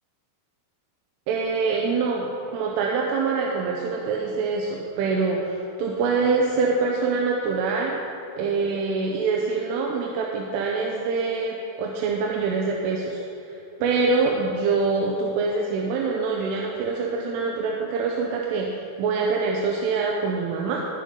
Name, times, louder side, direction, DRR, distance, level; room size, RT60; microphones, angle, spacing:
voice 1, 1.3-8.0 8.4-20.8, right 4 dB, 80° right, -1 dB, 3.4 m, -25 dB
20.5 x 9.4 x 3.9 m, 2.8 s
omnidirectional pair, 5.7 m